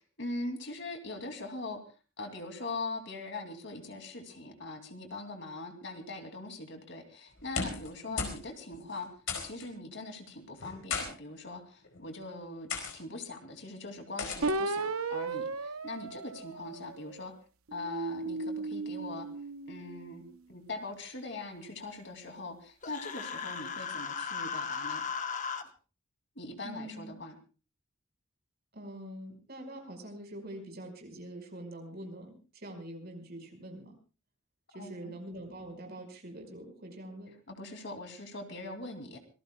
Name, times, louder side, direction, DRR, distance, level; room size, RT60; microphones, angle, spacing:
voice 1, 0.0-1.8 2.2-9.1 9.4-17.3 17.7-19.3 19.7-25.0 26.3-27.4 34.8-35.1 37.5-39.2, left 2 dB, 60° left, 5 dB, 2.7 m, -41 dB
sound 1, 7.4-7.9 8.2-8.4 8.7-8.8 9.3-9.7 10.6-11.1 11.8-12.1 12.7-13.0 14.2-14.5, left 5 dB, 75° left, 4.7 m, -35 dB
sound 2, 14.4-17.1 17.7-20.2, right 3 dB, 90° right, 1.0 m, -35 dB
Human voice, 22.8-25.6, left 6 dB, 35° left, 1.1 m, -36 dB
voice 2, 26.6-27.2 28.7-34.0 34.7-37.3, right 1 dB, 50° right, 3 dB, 5.3 m, -44 dB
26.0 x 19.5 x 2.3 m, 0.34 s
head